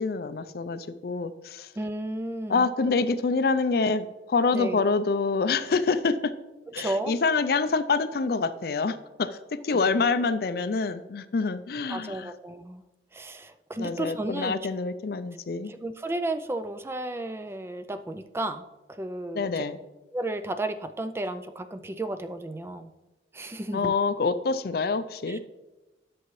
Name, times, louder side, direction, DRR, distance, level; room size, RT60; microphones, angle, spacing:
voice 1, 0.0-1.7 2.5-6.3 6.7-9.4 9.6-12.3 13.8-15.7 19.3-19.8 23.7-25.4, left 4 dB, 60° left, 13 dB, 0.4 m, -26 dB
voice 2, 1.8-2.7 4.5-4.9 6.8-7.1 9.7-9.9 11.9-12.8 13.1-14.5 15.6-19.6 20.1-22.9 23.3-23.9 25.3-25.4, right 1 dB, 15° right, 10 dB, 0.3 m, -33 dB
11.0 x 7.0 x 3.1 m, 1.1 s
head